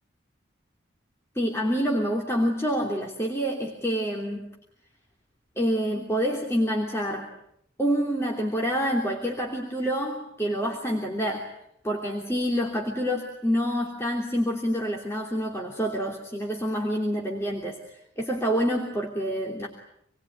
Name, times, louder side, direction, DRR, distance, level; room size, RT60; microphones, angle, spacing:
voice 1, 1.3-4.4 5.6-7.3 7.8-11.5 11.8-17.8 18.2-19.7, equal, 15° left, -1 dB, 3.1 m, -27 dB
27.5 x 21.5 x 9.6 m, 0.72 s
head